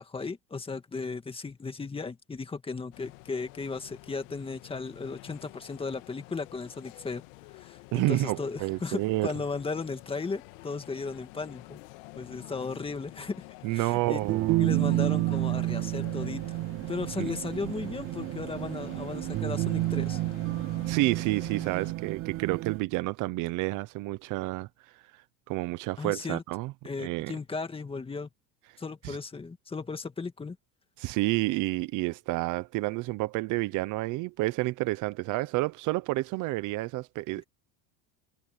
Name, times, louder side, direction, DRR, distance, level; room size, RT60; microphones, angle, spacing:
voice 1, 0.0-7.2 7.5-11.8 12.1-13.4 13.7-14.2 14.6-16.6 16.9-20.2 26.0-26.4 26.8-28.3 28.8-30.6, left 4 dB, 15° left, 2.0 m, -36 dB
sound 1, 2.9-21.9, left 22 dB, 75° left, 2.0 m, -49 dB
voice 2, 7.9-9.3 13.6-14.6 17.2-17.3 20.9-24.7 25.1-25.2 25.5-26.7 27.0-27.3 29.0-29.2 31.0-37.4, right 20 dB, 50° right, 0.8 m, -29 dB
sound 2, 14.2-22.8, right 18 dB, 35° right, 0.4 m, -30 dB
supercardioid pair, 135°, 38 cm